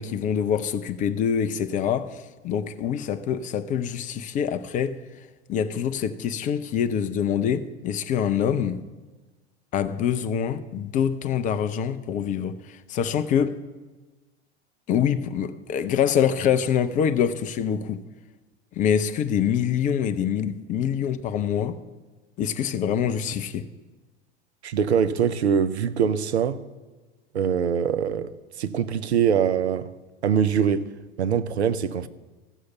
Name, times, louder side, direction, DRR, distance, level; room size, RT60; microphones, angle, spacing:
voice 1, 0.0-5.0 5.5-8.8 9.7-13.6 14.9-18.0 18.8-21.8 22.4-23.7, left 8 dB, 25° left, 0.4 m, -25 dB
voice 2, 24.6-26.6 27.3-28.3 28.6-29.9 30.2-30.9 31.2-32.1, right 7 dB, 75° right, 0.6 m, -23 dB
14.5 x 6.4 x 6.9 m
figure-of-eight pair, 80°, 34 cm